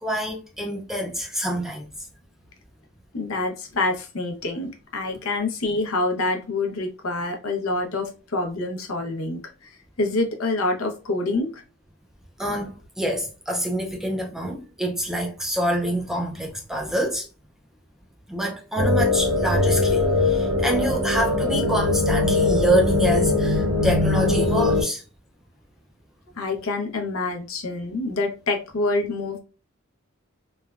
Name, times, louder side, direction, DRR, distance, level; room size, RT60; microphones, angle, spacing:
voice 1, 0.0-2.1 12.4-17.3 18.3-25.0, right 1 dB, ahead, 0.3 m, -26 dB
voice 2, 3.1-11.6 26.4-29.4, left 2 dB, 85° left, 0.7 m, -27 dB
sound 1, 18.8-24.8, left 2 dB, 70° right, 0.7 m, -21 dB
3.2 x 2.2 x 2.3 m
head